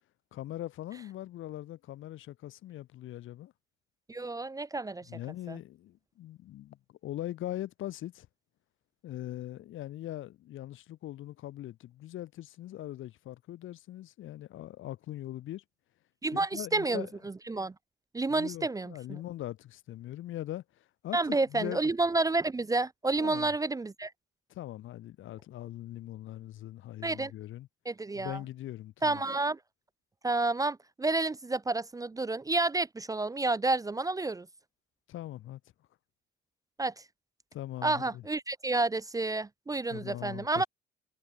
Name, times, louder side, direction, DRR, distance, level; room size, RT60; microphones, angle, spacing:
voice 1, 0.3-3.5 5.1-8.3 9.0-15.6 16.3-17.1 18.3-20.6 21.0-21.2 21.5-21.8 23.2-23.5 24.5-27.7 28.1-29.2 35.1-35.6 37.5-38.2 39.9-40.7, left 14 dB, 80° left, 2.6 m, -41 dB
voice 2, 4.1-5.1 5.5-5.6 16.2-17.7 18.1-19.2 21.1-24.1 27.0-27.3 27.9-28.4 29.0-29.6 30.2-34.5 36.8-36.9 37.8-40.6, right 3 dB, 20° right, 0.5 m, -30 dB
cardioid pair, 90°, 20 cm